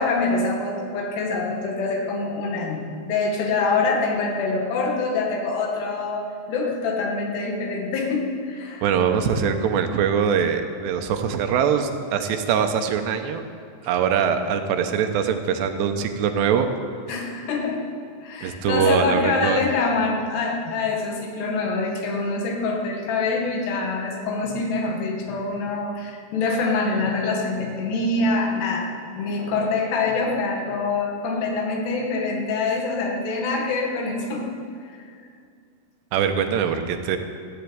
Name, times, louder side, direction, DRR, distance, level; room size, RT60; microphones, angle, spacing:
voice 1, 0.0-8.8 17.1-17.8 18.2-28.9 29.2-34.5 34.8-34.9, left 3 dB, 80° left, 0 dB, 4.0 m, -25 dB
voice 2, 8.8-13.4 13.8-16.7 18.4-19.6 36.1-37.2, right 7 dB, 90° right, 7 dB, 3.2 m, -22 dB
14.0 x 11.5 x 8.7 m, 2.3 s
omnidirectional pair, 4.8 m